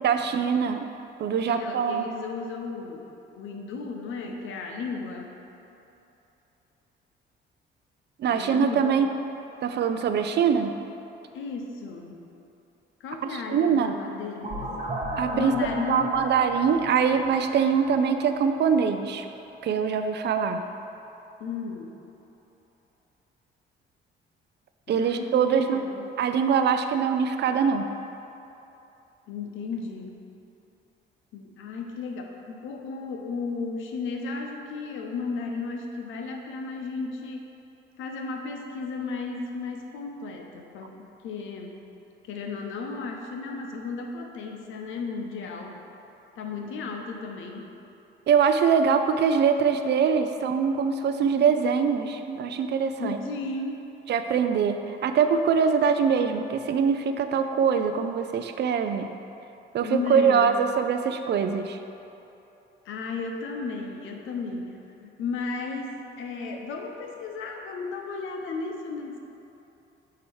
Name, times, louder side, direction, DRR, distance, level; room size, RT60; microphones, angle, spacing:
voice 1, 0.0-0.8 1.2-2.1 8.2-9.1 9.6-10.7 13.3-13.9 15.2-15.5 15.9-19.3 19.6-20.6 24.9-25.8 26.2-27.8 48.3-53.2 54.1-59.1 59.7-61.8, right 6 dB, 60° right, 7 dB, 0.4 m, -23 dB
voice 2, 1.4-5.3 8.3-8.9 11.3-12.2 13.0-14.7 15.3-16.1 21.4-22.0 24.9-26.1 29.3-30.2 31.3-37.5 38.0-41.8 42.3-45.8 46.4-47.7 53.0-53.9 59.8-60.5 62.8-64.7 65.0-69.2, left 4 dB, 80° left, 2 dB, 0.8 m, -34 dB
sound 1, 14.4-19.1, right 1 dB, 35° right, 1.2 m, -35 dB
8.5 x 2.9 x 4.7 m, 3.0 s
cardioid pair, 90°, 20 cm